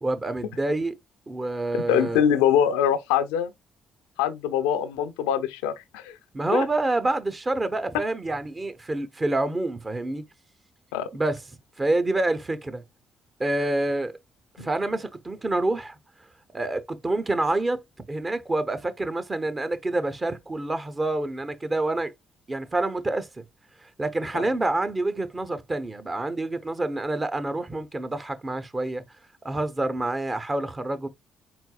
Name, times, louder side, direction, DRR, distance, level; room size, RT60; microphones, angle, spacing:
voice 1, 0.0-0.9 1.3-2.2 6.3-10.2 11.1-11.4 11.8-12.8 13.4-14.1 14.6-15.9 16.5-17.8 18.1-22.1 22.5-23.3 23.8-29.0 29.4-31.1, right 2 dB, 25° right, 0.8 m, -27 dB
voice 2, 1.9-3.5 4.2-6.1 6.5-6.6 10.9-11.1 14.6-14.7 24.3-24.4, left 9 dB, 90° left, 0.5 m, -23 dB
4.3 x 4.0 x 2.3 m
supercardioid pair, 60°, 0 cm